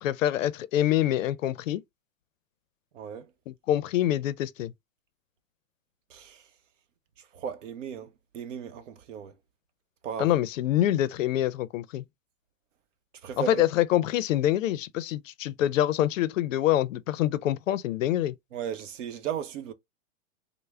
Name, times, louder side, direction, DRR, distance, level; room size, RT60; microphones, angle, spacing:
voice 1, 0.0-1.8 3.5-4.7 10.2-12.0 13.4-18.3, left 12 dB, 70° left, 0.5 m, -26 dB
voice 2, 2.9-3.3 6.1-6.4 7.2-9.4 10.0-10.3 13.2-13.7 18.5-19.7, right 8 dB, 65° right, 0.7 m, -36 dB
3.3 x 2.0 x 3.4 m
hypercardioid pair, 160°, 40 cm